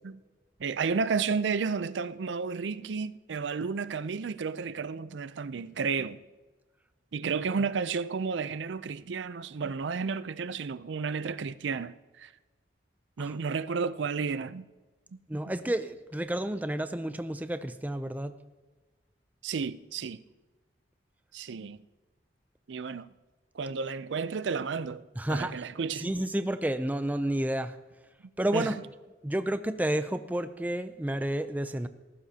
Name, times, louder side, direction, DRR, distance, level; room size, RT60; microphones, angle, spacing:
voice 1, 0.6-6.2 7.1-12.3 13.2-14.6 15.4-15.5 19.4-20.2 21.3-21.8 22.7-23.1 23.5-25.0 25.3-26.1 28.5-28.7, right 5 dB, 85° right, 0.5 m, -32 dB
voice 2, 15.3-18.3 25.2-25.5 26.0-27.7 28.4-28.8 29.2-31.9, right 1 dB, 10° right, 0.5 m, -30 dB
18.0 x 15.0 x 2.8 m
head